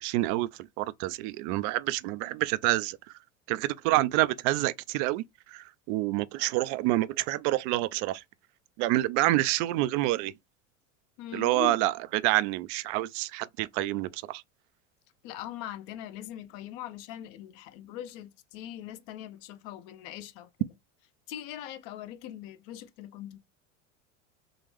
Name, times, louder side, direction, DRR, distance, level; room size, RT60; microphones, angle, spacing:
voice 1, 0.0-3.0 3.5-5.2 5.5-8.2 8.8-10.3 11.3-14.4, right 17 dB, 55° right, 0.5 m, -27 dB
voice 2, 11.2-11.8 15.2-20.7 21.3-23.4, left 11 dB, 60° left, 0.7 m, -41 dB
3.9 x 2.9 x 3.2 m
hypercardioid pair, 85°, 40 cm